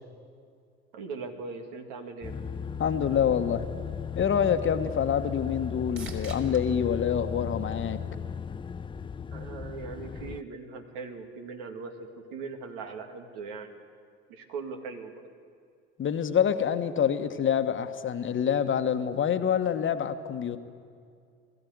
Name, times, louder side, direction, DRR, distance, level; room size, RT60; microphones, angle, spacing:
voice 1, 0.9-2.3 9.3-13.8 14.3-15.1, right 4 dB, 70° right, 4 dB, 2.5 m, -40 dB
sound 1, 2.2-10.4, left 6 dB, 15° left, 0.5 m, -36 dB
voice 2, 2.8-3.6 4.1-8.0 16.0-20.6, left 8 dB, 35° left, 9 dB, 1.4 m, -26 dB
sound 2, 4.9-8.4 9.0-9.6 17.4-17.5, right 3 dB, 40° right, 3.6 m, -49 dB
21.5 x 14.0 x 9.5 m, 2.3 s
hypercardioid pair, 75°, 33 cm